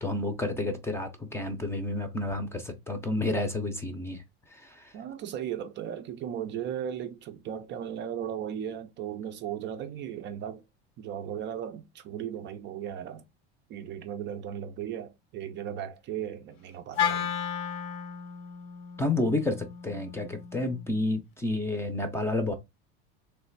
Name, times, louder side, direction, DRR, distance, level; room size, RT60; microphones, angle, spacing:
voice 1, 0.0-4.2 4.5-4.9 19.0-22.5, left 2 dB, 10° left, 0.6 m, -30 dB
voice 2, 4.9-10.6 11.0-13.2 13.7-17.3, right 9 dB, 35° right, 0.5 m, -36 dB
Wind instrument woodwind instrument, 17.0-21.2, left 8 dB, 60° left, 0.8 m, -34 dB
3.3 x 3.1 x 4.5 m
cardioid pair, 150°, 30 cm